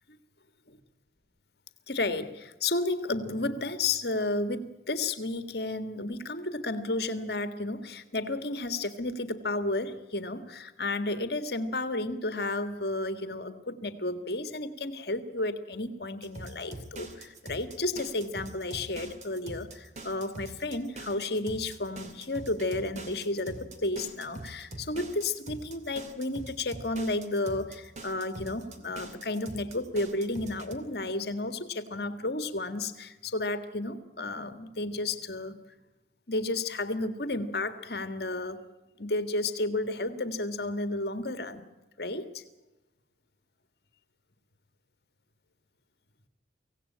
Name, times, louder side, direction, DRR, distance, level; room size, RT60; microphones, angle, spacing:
voice 1, 1.9-35.5 36.3-38.6 39.0-41.7 42.0-42.4, left 2 dB, 65° left, 9 dB, 1.8 m, -32 dB
sound 1, 16.2-30.8, right 2 dB, 40° right, 2.6 m, -44 dB
25.0 x 17.0 x 8.7 m, 1.1 s
head